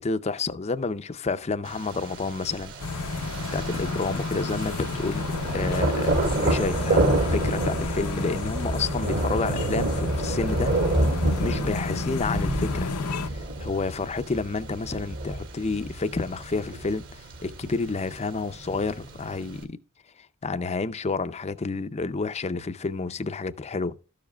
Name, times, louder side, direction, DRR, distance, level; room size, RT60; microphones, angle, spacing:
voice 1, 0.0-2.7 3.1-3.3 3.5-5.2 5.5-10.7 11.4-12.9 13.2-19.8 20.2-23.9, left 4 dB, 30° left, 0.5 m, -30 dB
Thunder, 1.7-19.6, right 2 dB, 60° right, 2.2 m, -29 dB
sound 1, 2.8-13.3, left 3 dB, 80° left, 0.7 m, -31 dB
13.0 x 7.2 x 2.3 m
head